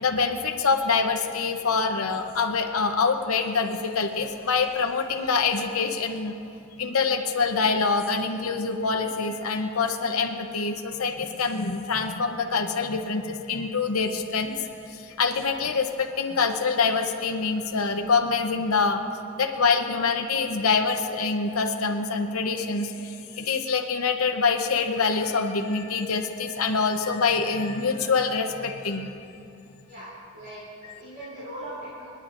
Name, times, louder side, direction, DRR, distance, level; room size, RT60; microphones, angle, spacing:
voice 1, 0.0-6.4 6.8-14.5 15.2-19.0 19.4-29.1, left 4 dB, 90° left, 4 dB, 0.8 m, -25 dB
voice 2, 29.9-32.1, right 1 dB, 50° right, -10 dB, 3.1 m, -40 dB
30.0 x 10.0 x 2.6 m, 2.6 s
head